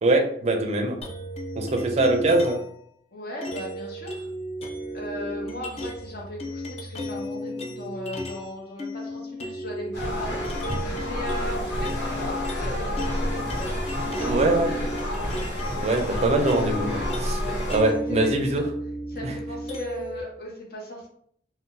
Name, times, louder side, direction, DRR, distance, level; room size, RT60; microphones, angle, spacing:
voice 1, 0.0-1.0 1.6-2.6 14.2-14.7 15.8-17.4 17.7-18.6 19.2-19.3, right 2 dB, 40° right, 4 dB, 0.5 m, -23 dB
sound 1, 1.0-2.7 3.4-8.5 8.8-20.2, equal, 35° left, 0.5 m, -34 dB
voice 2, 3.1-4.3 4.9-10.4 10.7-15.3 16.6-16.8 17.4-18.7 19.1-21.1, left 1 dB, 60° left, -2 dB, 1.0 m, -38 dB
sound 2, 9.9-17.8, left 1 dB, 90° left, 1.3 m, -29 dB
2.6 x 2.2 x 3.7 m, 0.66 s
head